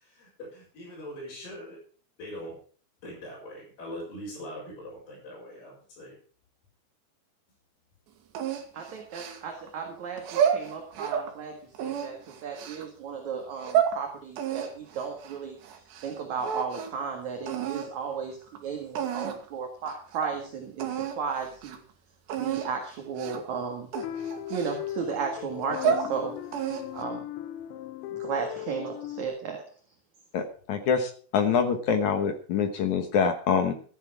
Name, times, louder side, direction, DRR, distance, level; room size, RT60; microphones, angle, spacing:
voice 1, 0.0-1.8 2.2-2.5 3.0-6.2, equal, 50° left, -6 dB, 7.2 m, -42 dB
sound 1, 8.4-9.7 10.2-11.3 11.8-12.8 13.4-14.0 14.4-16.1 16.4-17.0 17.5-17.9 18.6-18.7 19.0-19.5 19.9-20.0 20.2-20.4 20.8-21.2 21.5-21.8 22.3-22.7 23.2-23.5 23.9-25.1 25.6-26.1 26.5-27.0, right 8 dB, 75° right, 3.9 m, -30 dB
voice 2, 8.7-15.6 16.0-21.8 22.4-23.9 24.5-26.5 26.9-27.3 28.1-29.6, right 6 dB, 50° right, 2 dB, 2.6 m, -34 dB
sound 2, 24.0-29.3, left 12 dB, 85° left, 3.1 m, -37 dB
voice 3, 30.3-33.7, left 6 dB, 65° left, 7 dB, 1.9 m, -25 dB
14.5 x 10.5 x 4.9 m, 0.44 s
omnidirectional pair, 5.2 m